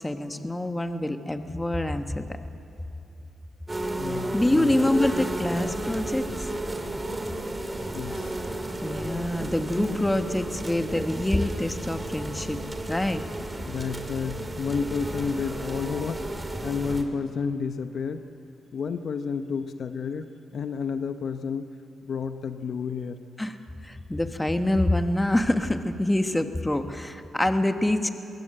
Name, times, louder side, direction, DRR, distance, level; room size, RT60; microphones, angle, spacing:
voice 1, 0.0-2.3 4.3-6.2 8.8-12.6 12.9-13.2 23.4-23.6 23.8-28.1, left 1 dB, 10° left, 7 dB, 1.3 m, -26 dB
sound 1, 3.7-17.0, right 1 dB, 20° right, 2.2 m, -33 dB
voice 2, 4.0-5.0 7.9-8.4 13.7-18.3 18.7-21.7 22.0-23.2, left 5 dB, 65° left, 9 dB, 0.8 m, -31 dB
22.5 x 17.0 x 7.8 m, 3.0 s
cardioid pair, 75°, 0 cm